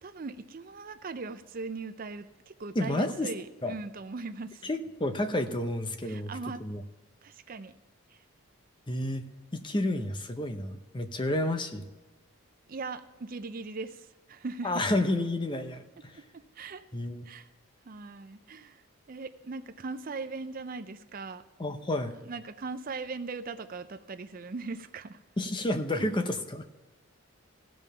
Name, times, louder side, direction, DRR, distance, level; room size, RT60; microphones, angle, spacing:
voice 1, 0.0-4.7 6.0-6.6 7.2-7.7 8.1-8.2 12.7-14.8 16.3-16.8 17.2-17.5 17.8-21.4 22.1-25.2 26.0-26.1, right 4 dB, 40° right, 11 dB, 0.4 m, -39 dB
voice 2, 2.8-3.3 3.6-3.7 4.6-6.3 6.6-6.8 8.9-9.2 9.5-11.8 14.6-16.2 16.9-17.3 21.6-22.1 25.4-26.6, left 1 dB, 20° left, 8 dB, 0.6 m, -30 dB
16.0 x 5.4 x 5.6 m, 1.1 s
head